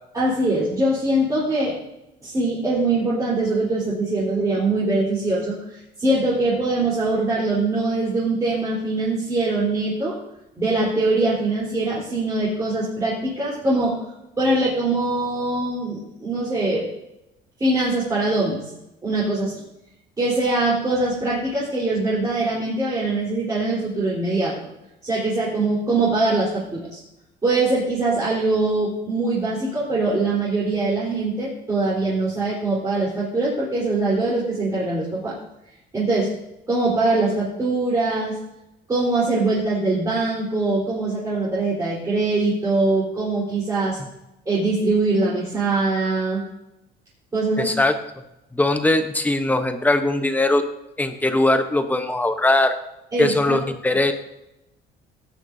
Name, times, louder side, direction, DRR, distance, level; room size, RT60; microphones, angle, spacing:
voice 1, 0.1-1.8 2.2-10.2 10.6-14.0 14.4-16.9 17.6-18.7 19.0-19.6 20.2-24.6 25.0-27.0 27.4-35.4 35.9-36.3 36.7-38.4 38.9-44.0 44.5-46.5 47.3-47.8 53.1-53.6, right 2 dB, 20° right, -9 dB, 3.9 m, -22 dB
voice 2, 47.6-48.0 48.5-50.6 51.0-52.8 53.2-54.1, left 2 dB, 10° left, 7 dB, 0.9 m, -20 dB
18.5 x 10.5 x 2.7 m, 0.91 s
cardioid pair, 155°, 18 cm